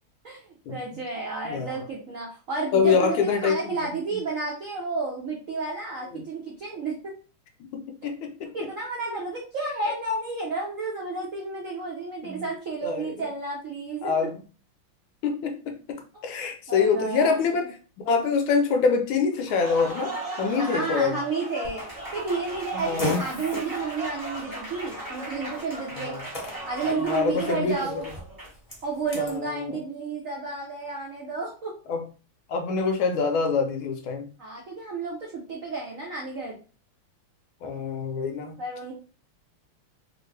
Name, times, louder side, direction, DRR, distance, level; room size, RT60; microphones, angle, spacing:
voice 1, 0.2-7.1 8.5-14.3 16.1-16.4 16.7-17.7 20.6-21.8 22.1-26.2 26.6-28.0 28.8-31.7 34.4-36.6 38.6-38.9, right 3 dB, 70° right, -2 dB, 0.7 m, -31 dB
voice 2, 1.4-1.8 2.7-3.7 6.1-6.2 7.7-8.5 12.2-12.5 12.8-13.1 14.0-14.4 15.2-16.0 16.2-17.8 18.1-21.2 22.7-23.2 25.9-26.3 26.8-27.9 29.1-29.8 31.9-32.0 32.5-34.3 37.6-38.6, left 5 dB, 75° left, 4 dB, 1.3 m, -25 dB
Applause, 19.3-28.7, right 1 dB, 20° right, 0.5 m, -37 dB
Fart, 21.6-29.4, left 2 dB, 30° left, 0.7 m, -38 dB
3.3 x 2.5 x 3.2 m, 0.37 s
omnidirectional pair, 2.4 m